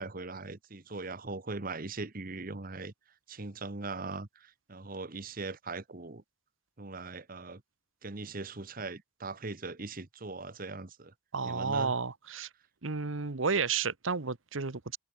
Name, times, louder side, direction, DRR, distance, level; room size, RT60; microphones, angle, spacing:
voice 1, 0.0-2.9 3.3-6.2 6.8-7.6 8.0-11.1 11.4-11.9, right 3 dB, 45° right, 1.3 m, -40 dB
voice 2, 11.3-12.5 12.8-15.0, right 5 dB, 90° right, 1.2 m, -31 dB
head